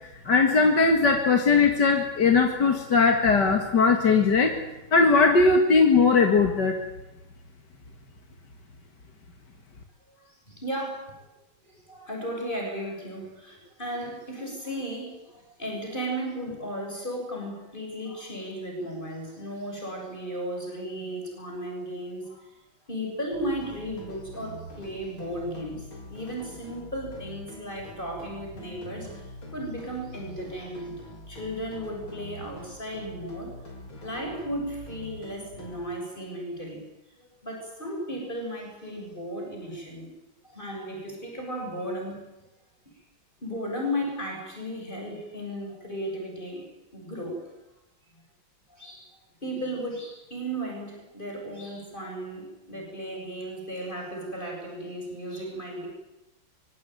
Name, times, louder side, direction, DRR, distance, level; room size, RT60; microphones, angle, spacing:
voice 1, 0.2-4.6 4.9-6.8, left 4 dB, 60° left, 3 dB, 2.7 m, -19 dB
voice 2, 10.1-11.3 11.6-22.5 22.9-31.0 31.3-33.5 34.0-36.8 37.2-40.1 40.4-42.2 43.4-46.7 46.9-47.4 48.7-55.9, equal, 25° left, 0 dB, 7.6 m, -35 dB
sound 1, 23.3-35.8, left 1 dB, 90° left, 5.3 m, -44 dB
24.0 x 24.0 x 9.3 m, 0.98 s
omnidirectional pair, 2.2 m